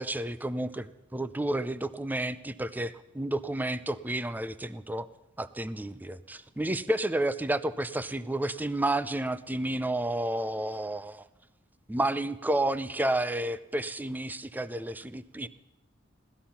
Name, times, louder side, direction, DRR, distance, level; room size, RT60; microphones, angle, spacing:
voice 1, 0.0-5.1 5.4-11.2 11.9-15.5, right 1 dB, 10° right, 15 dB, 0.5 m, -31 dB
17.0 x 13.5 x 5.7 m, 0.94 s
head